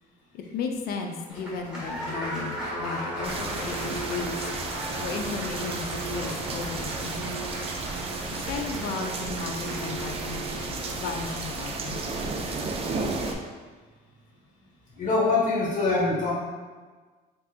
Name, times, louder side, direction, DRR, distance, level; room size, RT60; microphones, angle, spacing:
voice 1, 0.3-4.5 5.0-7.6 8.5-12.3, left 5 dB, 65° left, 4 dB, 0.4 m, -35 dB
Applause, 1.3-11.7, equal, 5° right, 1.3 m, -39 dB
sound 1, 1.9-13.3, right 3 dB, 65° right, 0.9 m, -39 dB
sound 2, 3.2-13.3, right 3 dB, 35° right, 0.4 m, -33 dB
voice 2, 15.0-16.3, left 3 dB, 50° left, -4 dB, 1.1 m, -24 dB
3.3 x 2.9 x 2.4 m, 1.4 s
cardioid pair, 110°, 17 cm